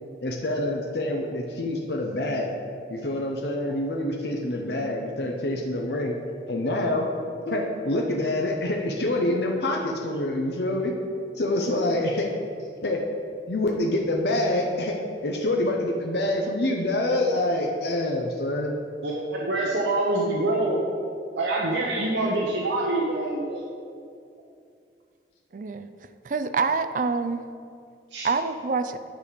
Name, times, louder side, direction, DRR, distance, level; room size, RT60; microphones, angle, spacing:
voice 1, 0.2-2.6 2.9-6.2 6.5-7.1 7.5-10.9 11.4-12.3 12.8-13.0 13.5-18.7, left 1 dB, 70° left, 1 dB, 0.7 m, -26 dB
voice 2, 19.0-20.8 21.4-23.6 28.1-28.3, right 2 dB, 85° right, -3 dB, 0.8 m, -25 dB
voice 3, 25.5-25.9 26.2-27.4 28.2-29.0, right 4 dB, 45° right, 10 dB, 0.4 m, -26 dB
9.5 x 5.1 x 5.0 m, 2.3 s
head